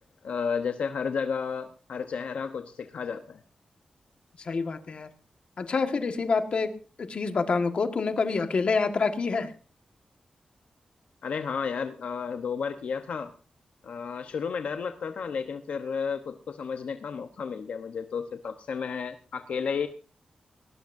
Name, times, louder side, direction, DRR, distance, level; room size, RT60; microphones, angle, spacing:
voice 1, 0.2-3.4 11.2-13.3 13.8-19.9, left 6 dB, 80° left, 7 dB, 1.0 m, -32 dB
voice 2, 4.4-5.1 5.6-6.7 7.0-9.5, left 4 dB, 55° left, 7 dB, 1.6 m, -27 dB
19.5 x 18.0 x 2.7 m, 0.37 s
wide cardioid pair, 135°, 2 cm